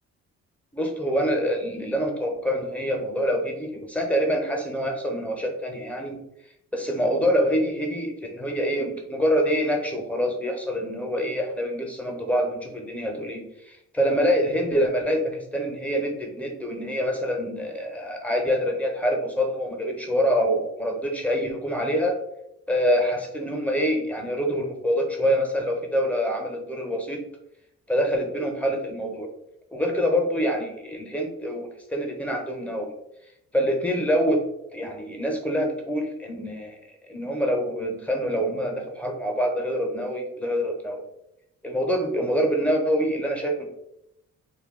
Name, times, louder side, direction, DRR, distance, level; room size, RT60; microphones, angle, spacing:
voice 1, 0.7-6.2 6.7-22.2 22.7-27.2 27.9-29.3 29.7-32.9 33.5-34.4 34.7-36.8 37.1-41.0 41.6-43.7, equal, 5° left, 2 dB, 0.6 m, -25 dB
2.2 x 2.1 x 3.5 m, 0.81 s
cardioid pair, 90°, 30 cm